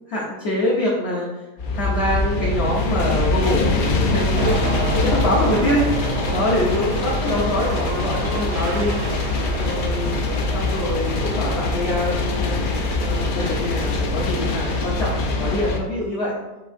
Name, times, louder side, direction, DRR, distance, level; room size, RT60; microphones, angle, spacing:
voice 1, 0.1-1.4 1.7-4.6 4.9-10.3 10.5-12.6 13.0-16.4, left 1 dB, 55° left, -5 dB, 1.0 m, -25 dB
sound 1, 1.6-15.8, left 2 dB, 75° left, 0.4 m, -23 dB
sound 2, 4.3-11.5, right 4 dB, 65° right, 0.7 m, -32 dB
5.3 x 3.6 x 2.5 m, 1.0 s
omnidirectional pair, 1.5 m